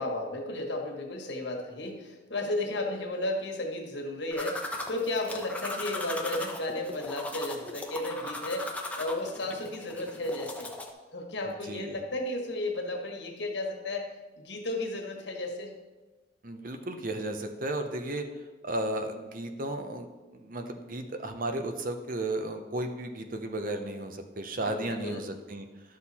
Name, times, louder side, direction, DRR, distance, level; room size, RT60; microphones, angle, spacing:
voice 1, 0.0-8.7 9.0-10.7 11.1-14.1 14.4-15.7 24.6-25.3, left 2 dB, 70° left, 1 dB, 1.6 m, -33 dB
sound 1, 4.3-10.9, left 1 dB, 10° left, 0.8 m, -38 dB
voice 2, 11.4-12.0 16.4-18.3 18.6-20.1 20.3-25.7, right 1 dB, 50° right, 6 dB, 0.8 m, -34 dB
11.5 x 6.6 x 4.2 m, 1.2 s
head